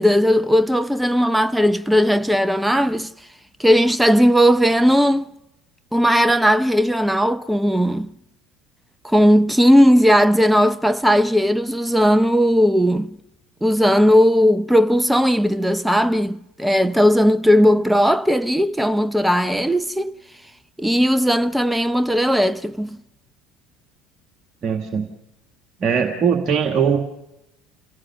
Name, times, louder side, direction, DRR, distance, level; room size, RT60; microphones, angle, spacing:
voice 1, 0.0-3.1 3.6-5.3 5.9-8.1 9.0-13.2 13.6-20.2 20.8-23.0, equal, 5° right, 0.8 m, -17 dB
voice 2, 24.6-25.1 25.8-27.0, right 7 dB, 40° right, 1.8 m, -20 dB
29.0 x 17.5 x 7.0 m
figure-of-eight pair, 60°, 0 cm